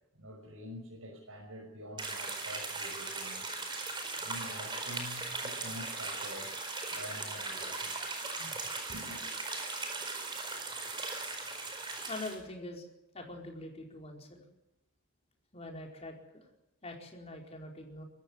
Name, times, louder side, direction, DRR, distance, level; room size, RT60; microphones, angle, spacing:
voice 1, 0.1-3.5 4.2-8.6 8.9-9.2, equal, 75° right, -1 dB, 6.1 m, -47 dB
sound 1, 2.0-12.4, right 3 dB, 20° right, 4.6 m, -38 dB
voice 2, 12.1-12.8 13.1-14.4 15.5-16.5 16.8-18.0, left 2 dB, 30° left, 1 dB, 4.7 m, -44 dB
23.5 x 14.5 x 9.9 m, 0.88 s
head